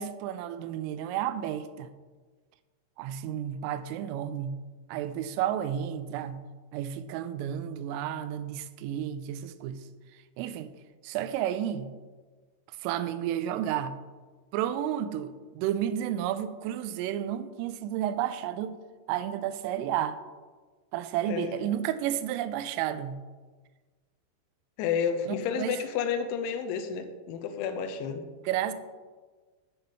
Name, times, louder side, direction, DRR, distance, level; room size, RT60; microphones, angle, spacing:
voice 1, 0.0-1.9 3.0-4.6 4.9-6.4 6.7-9.9 10.4-10.7 11.0-11.9 12.8-14.0 14.5-18.8 19.1-20.2 20.9-23.2 25.3-25.8 28.5-28.7, right 10 dB, 90° right, 3.2 m, -31 dB
voice 2, 21.3-21.6 24.8-28.2, left 7 dB, 80° left, 2.9 m, -31 dB
7.8 x 6.9 x 5.5 m
omnidirectional pair, 5.7 m